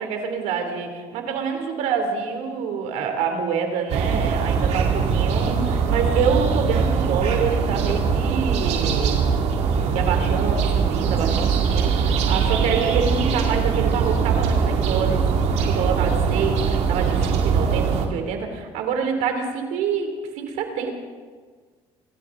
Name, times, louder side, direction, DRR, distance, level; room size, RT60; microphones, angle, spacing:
voice 1, 0.0-9.2 9.9-15.2 15.6-20.9, right 6 dB, 85° right, 5 dB, 2.9 m, -26 dB
sound 1, 3.9-18.1, right 6 dB, 65° right, 2.3 m, -21 dB
27.0 x 14.0 x 3.8 m, 1.5 s
cardioid pair, 105°, 12 cm